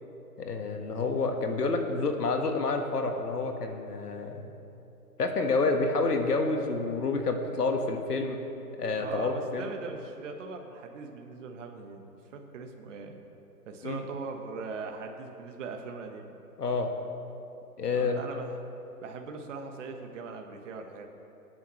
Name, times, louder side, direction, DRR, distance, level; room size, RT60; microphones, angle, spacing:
voice 1, 0.4-4.4 5.2-8.4 8.8-9.7 13.8-14.0 16.6-16.9 17.8-18.2, left 3 dB, 80° left, 4 dB, 1.6 m, -28 dB
voice 2, 9.0-12.0 12.3-13.2 13.6-16.3 17.9-18.6 19.0-21.1, right 4 dB, 50° right, 4 dB, 1.4 m, -40 dB
23.5 x 9.3 x 3.2 m, 2.9 s
hypercardioid pair, 140°, 47 cm